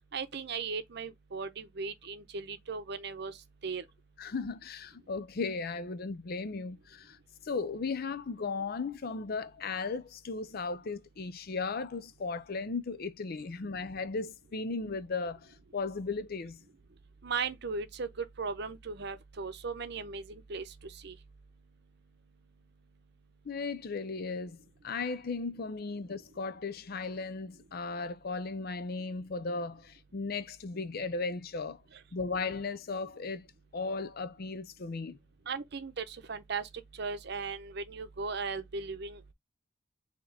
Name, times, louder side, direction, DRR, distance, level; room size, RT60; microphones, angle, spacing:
voice 1, 0.1-3.3 3.6-3.8 17.2-21.1 35.5-36.7 37.0-39.2, right 4 dB, 60° right, 0.8 m, -37 dB
voice 2, 4.2-7.2 7.4-16.6 23.4-31.8 32.1-33.5 33.7-35.2, left 4 dB, 50° left, 0.5 m, -36 dB
4.7 x 3.0 x 3.3 m
head